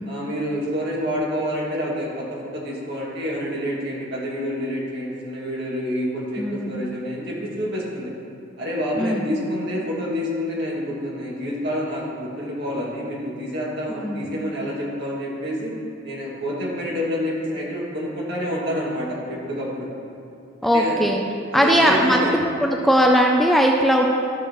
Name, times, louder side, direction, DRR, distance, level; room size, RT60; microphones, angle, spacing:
voice 1, 0.0-8.1 8.6-15.7 16.0-19.9 20.7-21.0 21.5-22.3, equal, 55° right, -5 dB, 2.1 m, -28 dB
voice 2, 6.4-6.8 9.0-9.3 14.0-14.4 20.6-21.2 21.5-24.1, equal, ahead, 1 dB, 0.4 m, -19 dB
13.5 x 6.2 x 3.1 m, 2.5 s
head